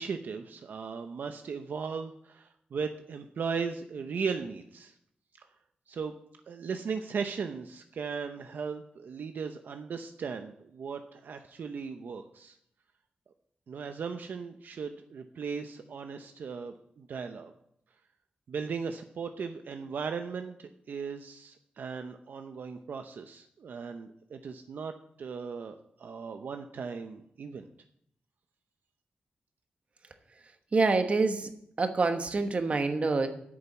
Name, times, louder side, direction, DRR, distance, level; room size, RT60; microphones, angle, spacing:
voice 1, 0.0-4.9 5.9-6.1 6.5-12.5 13.7-17.5 18.5-24.9 25.2-27.7, right 5 dB, 75° right, 7 dB, 0.7 m, -37 dB
voice 2, 30.7-31.5 31.8-33.3, right 3 dB, 40° right, 7 dB, 1.2 m, -26 dB
9.0 x 7.0 x 7.9 m, 0.71 s
wide cardioid pair, 125°, 3 cm